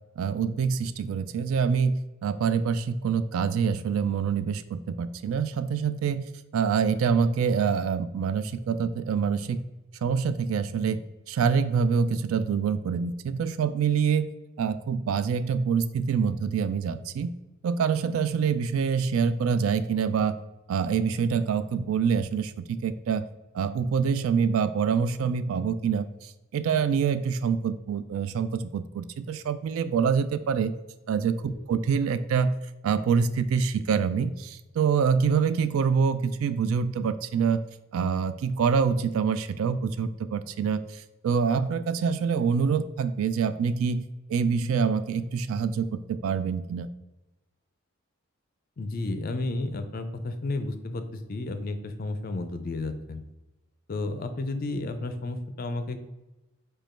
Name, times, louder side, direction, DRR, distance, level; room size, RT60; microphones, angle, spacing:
voice 1, 0.2-6.2 6.5-9.6 10.0-11.0 11.3-14.3 14.6-17.3 17.6-20.4 20.7-23.2 23.5-30.7 31.1-32.5 32.8-37.6 37.9-40.8 41.2-44.0 44.3-46.9, right 6 dB, 80° right, 13 dB, 0.3 m, -26 dB
voice 2, 48.8-53.2 53.9-56.0, left 2 dB, 45° left, 8 dB, 0.4 m, -32 dB
5.1 x 2.3 x 4.3 m, 1.0 s
head